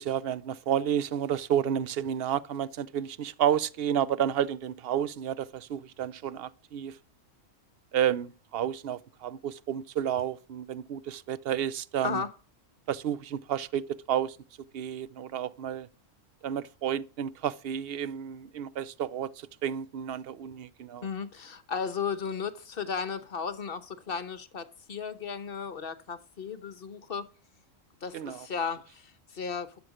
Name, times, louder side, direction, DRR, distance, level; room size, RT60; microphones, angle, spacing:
voice 1, 0.0-6.9 7.9-12.2 12.9-14.4 14.7-15.9 16.4-19.3 19.6-21.1 28.1-28.5, right 9 dB, 55° right, 0.8 m, -31 dB
voice 2, 21.0-27.3 28.0-29.8, left 6 dB, 50° left, 1.1 m, -35 dB
12.0 x 7.0 x 5.0 m
omnidirectional pair, 1.3 m